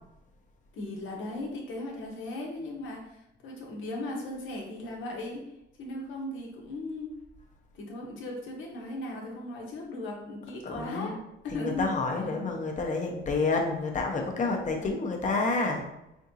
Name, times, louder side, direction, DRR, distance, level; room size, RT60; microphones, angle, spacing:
voice 1, 0.7-5.4 5.8-7.1 7.7-11.2 11.4-11.9 12.1-12.5 14.8-14.9, left 2 dB, 80° left, -1 dB, 1.1 m, -37 dB
voice 2, 10.6-11.2 11.5-15.8, left 3 dB, 40° left, 2 dB, 0.9 m, -29 dB
3.8 x 3.4 x 2.8 m, 0.83 s
cardioid pair, 90°, 20 cm